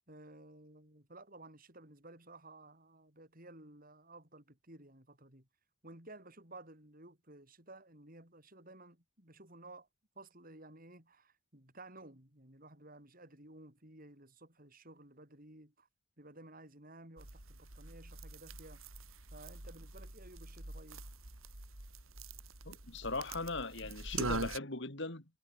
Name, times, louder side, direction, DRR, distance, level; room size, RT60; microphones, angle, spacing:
voice 1, 0.1-5.5 5.8-9.9 10.1-15.9 16.2-18.8 19.3-21.0, right 2 dB, 45° right, 6.6 m, -55 dB
sound 1, 17.2-24.6, right 3 dB, 90° right, 4.9 m, -44 dB
voice 2, 22.7-25.2, left 3 dB, 60° left, 3.4 m, -39 dB
head